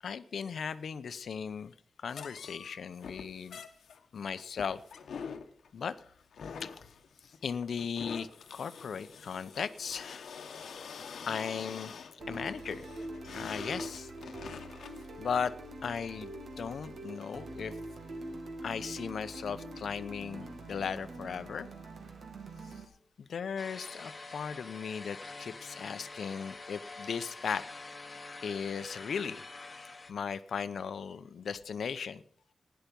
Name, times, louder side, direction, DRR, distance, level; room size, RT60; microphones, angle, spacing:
voice 1, 0.0-3.6 4.1-4.8 5.7-6.0 6.6-6.7 7.4-10.3 11.3-11.9 12.3-12.9 13.3-14.1 15.2-15.5 15.8-17.7 18.6-21.7 22.7-22.8 23.2-27.6 28.4-29.4 30.1-32.2, left 6 dB, 75° left, 0.7 m, -37 dB
sound 1, 2.1-15.0, left 6 dB, 90° left, 1.1 m, -46 dB
sound 2, 12.2-22.9, right 1 dB, 65° right, 2.4 m, -44 dB
sound 3, 23.6-30.1, left 3 dB, 25° left, 1.2 m, -46 dB
16.0 x 10.5 x 5.3 m
wide cardioid pair, 145°, 0 cm